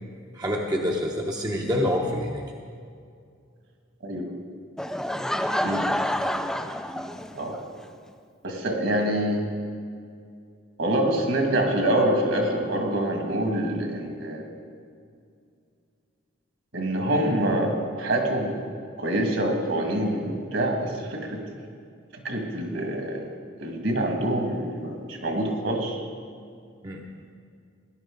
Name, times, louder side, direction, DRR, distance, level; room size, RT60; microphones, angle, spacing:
voice 1, 0.3-2.4 26.8-27.0, left 1 dB, 20° right, 0 dB, 0.8 m, -26 dB
Laughter / Crowd, 4.8-7.6, equal, 5° left, 0.4 m, -28 dB
voice 2, 8.4-9.4 10.8-14.5 16.7-18.6 19.0-21.4 22.2-23.2 23.6-26.0, right 1 dB, 65° right, 2 dB, 2.1 m, -26 dB
17.5 x 11.0 x 3.9 m, 2.3 s
head